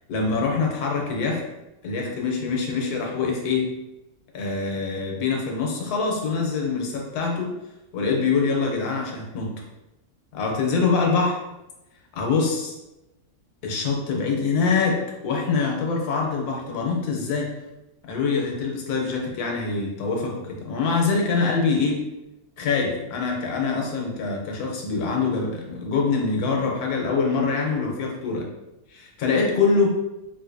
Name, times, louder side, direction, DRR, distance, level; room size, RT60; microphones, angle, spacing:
voice 1, 0.1-1.4 1.8-3.7 4.3-7.5 7.9-9.5 10.3-11.3 12.1-12.7 13.6-17.5 18.0-22.0 22.6-28.5 28.9-30.0, left 4 dB, 75° left, 0 dB, 1.2 m, -24 dB
3.8 x 2.5 x 2.5 m, 0.95 s
omnidirectional pair, 1.7 m